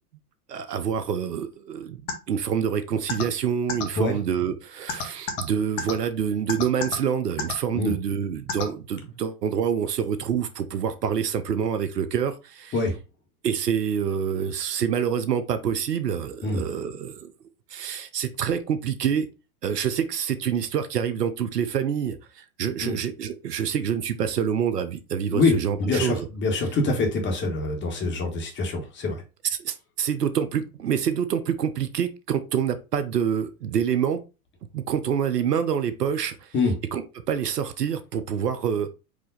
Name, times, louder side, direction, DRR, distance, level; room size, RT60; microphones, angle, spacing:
voice 1, 0.5-12.8 13.4-17.3 17.7-19.3 19.6-26.3 29.4-34.2 34.7-36.5 36.9-38.9, right 8 dB, 85° right, 0.8 m, -27 dB
sound 1, 2.1-2.2 3.1-3.2 3.7-3.8 4.9-5.4 5.8-5.9 6.5-7.0 7.4-7.5 8.5-8.6, left 6 dB, 55° left, 1.6 m, -27 dB
voice 2, 25.8-29.2 36.5-36.7, left 3 dB, 25° left, 1.4 m, -25 dB
4.8 x 2.8 x 3.9 m
hypercardioid pair, 110°, 47 cm